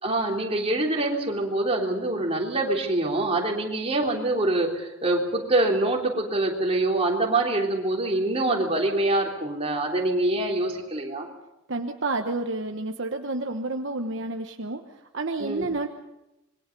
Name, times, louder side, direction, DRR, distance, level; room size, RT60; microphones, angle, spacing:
voice 1, 0.0-11.3 15.4-15.7, right 2 dB, 30° right, 0 dB, 3.5 m, -25 dB
voice 2, 11.7-15.9, right 2 dB, 60° right, 4 dB, 1.2 m, -30 dB
26.0 x 22.0 x 5.4 m, 0.92 s
head